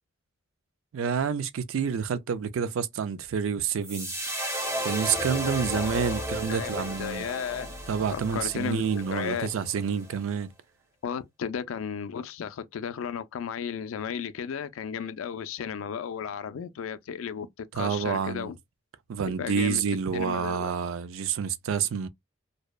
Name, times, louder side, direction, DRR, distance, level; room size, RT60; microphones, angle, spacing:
voice 1, 0.9-4.1 4.8-7.3 7.9-10.5 17.7-18.5 19.1-22.1, right 6 dB, 90° right, 0.4 m, -28 dB
sound 1, 3.8-10.2, equal, 15° right, 0.6 m, -34 dB
voice 2, 5.7-6.2 6.5-7.7 8.1-9.5 11.0-18.5 19.4-19.8 20.1-20.7, left 7 dB, 85° left, 0.4 m, -34 dB
2.7 x 2.1 x 2.2 m
head